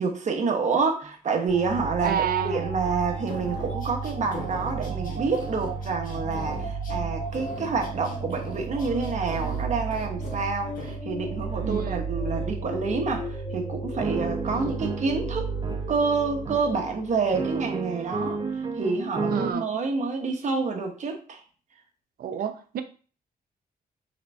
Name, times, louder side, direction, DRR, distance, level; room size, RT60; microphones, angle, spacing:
voice 1, 0.0-15.5 15.9-21.4, right 4 dB, 50° right, 0.9 m, -28 dB
sound 1, 1.0-1.1 1.5-5.8 7.2-7.3 8.0-8.2 8.7-9.1 9.7-10.1 10.7-11.0 11.5-11.7 12.3-12.5 13.1-13.3 14.0-19.5, right 4 dB, 30° right, 0.6 m, -35 dB
sound 2, 1.5-17.8, right 4 dB, 90° left, 2.1 m, -33 dB
voice 2, 2.0-2.7 11.6-12.0 14.7-14.8 19.3-19.7 22.2-22.8, right 8 dB, 70° right, 0.6 m, -29 dB
sound 3, 3.3-7.0 7.3-9.6 9.9-10.4 10.8-11.0, left 3 dB, 60° left, 1.1 m, -41 dB
4.0 x 3.4 x 3.2 m
cardioid pair, 110°, 16 cm